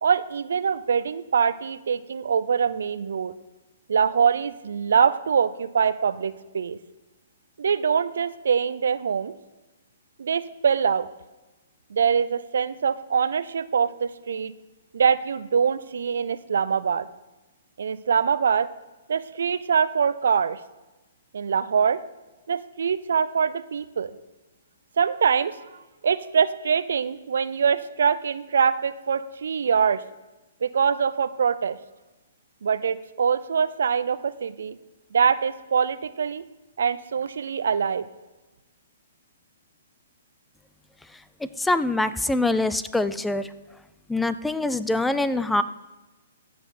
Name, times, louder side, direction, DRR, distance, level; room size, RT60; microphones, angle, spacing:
voice 1, 0.0-3.3 3.9-6.8 7.6-9.3 10.2-11.1 11.9-14.5 14.9-17.1 17.8-18.7 19.1-20.6 21.3-22.0 22.5-24.1 25.0-30.0 30.6-31.8 32.6-34.8 35.1-36.5 36.8-38.1, right 6 dB, 70° right, 15 dB, 0.5 m, -24 dB
voice 2, 41.6-43.5 44.1-45.6, left 2 dB, 5° left, 13 dB, 0.4 m, -24 dB
15.5 x 5.9 x 4.3 m, 1.1 s
hypercardioid pair, 130°, 0 cm